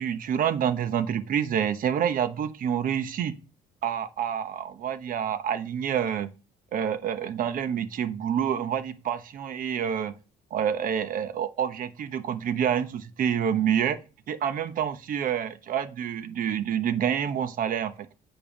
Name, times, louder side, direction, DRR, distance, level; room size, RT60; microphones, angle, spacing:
voice 1, 0.0-3.3 3.8-6.3 6.7-10.1 10.5-14.0 14.3-18.1, right 8 dB, 55° right, 1.0 m, -27 dB
9.1 x 5.4 x 5.2 m
cardioid pair, 110°, 17 cm